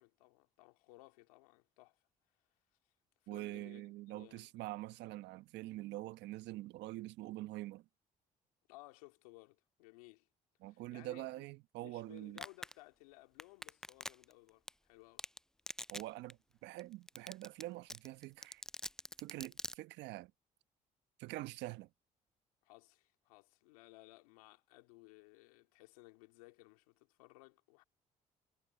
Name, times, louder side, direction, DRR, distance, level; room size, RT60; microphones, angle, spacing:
voice 1, 0.0-2.0 3.2-4.5 8.7-10.3 10.7-11.4 11.8-15.2 22.6-27.8, left 23 dB, 90° left, 2.5 m, -59 dB
voice 2, 3.3-7.8 10.6-12.4 15.9-18.6 19.2-20.3 21.2-21.9, right 17 dB, 75° right, 1.2 m, -45 dB
Domestic sounds home sounds, 12.4-12.7 13.4-14.3 14.7-14.8 15.2-15.4 15.7-16.0 16.3-16.4 16.8-16.9 17.1-17.6 17.9-19.7, left 1 dB, 5° left, 0.3 m, -43 dB
hypercardioid pair, 55°, 18 cm